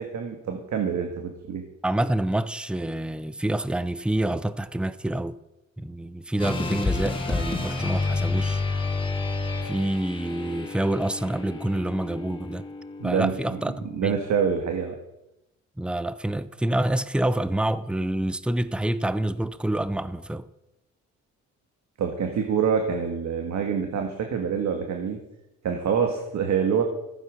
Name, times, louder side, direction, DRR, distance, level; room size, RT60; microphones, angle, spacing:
voice 1, 0.0-1.6 13.0-13.6 13.9-15.0 22.0-25.2 25.6-26.8, right 7 dB, 65° right, 1.9 m, -26 dB
voice 2, 1.8-5.4 5.8-8.6 9.6-12.7 13.0-14.2 15.8-20.5, right 1 dB, 5° right, 0.7 m, -27 dB
sound 1, 6.4-14.7, left 3 dB, 15° left, 3.0 m, -30 dB
14.5 x 9.1 x 6.5 m
cardioid pair, 90°, 30 cm